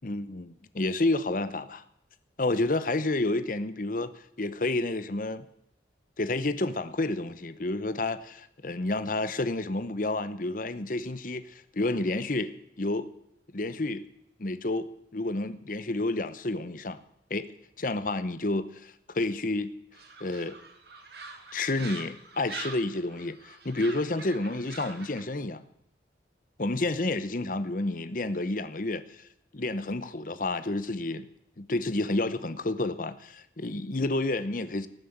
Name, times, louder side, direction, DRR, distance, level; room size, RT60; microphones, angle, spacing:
voice 1, 0.0-1.8 2.4-5.4 6.2-13.1 13.5-14.0 14.4-17.0 17.3-17.5 17.8-19.7 20.2-20.6 21.5-25.6 26.6-29.3 29.5-31.3 31.6-34.9, left 2 dB, 45° left, 0.9 m, -30 dB
sound 1, 19.9-25.2, right 4 dB, 60° right, 2.4 m, -44 dB
18.5 x 7.7 x 7.9 m
head